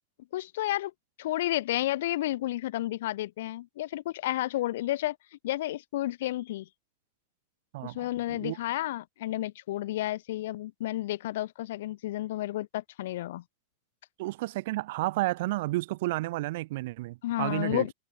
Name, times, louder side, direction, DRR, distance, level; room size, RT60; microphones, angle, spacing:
voice 1, 0.3-0.9 1.2-5.2 5.4-6.7 7.8-13.4 17.2-17.9, left 15 dB, 55° left, 0.9 m, -31 dB
voice 2, 14.2-17.9, right 19 dB, 50° right, 0.6 m, -31 dB
figure-of-eight pair, 90°, 0 cm